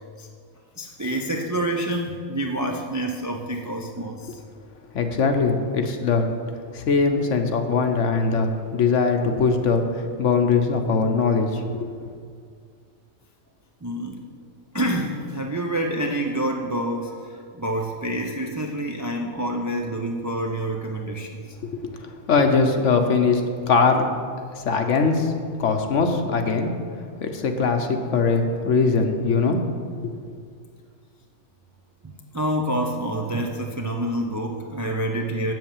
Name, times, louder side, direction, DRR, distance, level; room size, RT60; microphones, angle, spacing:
voice 1, 0.8-4.4 13.8-14.2 14.7-21.4 32.0-35.5, right 1 dB, 25° right, 2 dB, 0.4 m, -27 dB
voice 2, 4.9-6.3 6.7-12.1 21.7-21.8 22.3-24.0 24.5-26.7 27.2-29.6 30.0-30.1, left 4 dB, 60° left, 5 dB, 1.1 m, -21 dB
7.8 x 7.5 x 7.3 m, 2.1 s
omnidirectional pair, 1.5 m